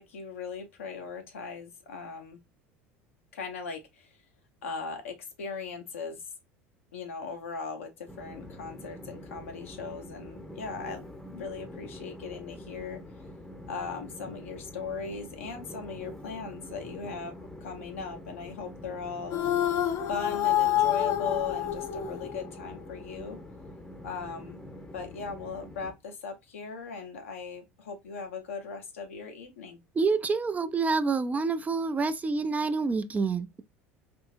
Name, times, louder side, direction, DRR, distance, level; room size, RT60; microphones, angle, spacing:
voice 1, 0.0-2.4 3.3-4.2 4.6-6.2 6.9-13.0 13.7-19.4 20.1-23.4 24.0-24.6 24.9-29.8, left 5 dB, 85° left, 0.8 m, -38 dB
Train, 8.1-25.9, left 1 dB, 10° left, 0.7 m, -45 dB
sound 1, 19.3-22.7, left 12 dB, 50° left, 0.5 m, -27 dB
voice 2, 30.0-33.6, right 4 dB, 20° right, 0.4 m, -27 dB
3.5 x 2.7 x 2.5 m
hypercardioid pair, 75°, 7 cm